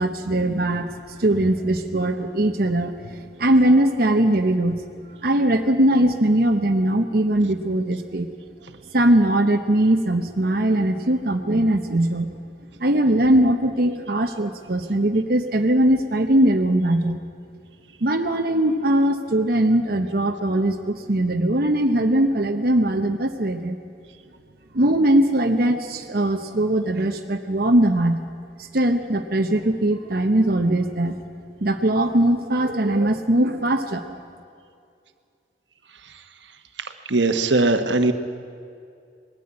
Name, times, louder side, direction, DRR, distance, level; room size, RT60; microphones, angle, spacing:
voice 1, 0.0-4.8 5.2-8.3 8.9-12.3 12.8-17.2 18.0-23.8 24.7-28.2 28.7-31.2 31.6-34.1, right 1 dB, 55° right, 4 dB, 1.0 m, -20 dB
voice 2, 36.8-38.1, right 2 dB, 85° right, 8 dB, 1.3 m, -20 dB
20.5 x 14.0 x 9.8 m, 2.4 s
head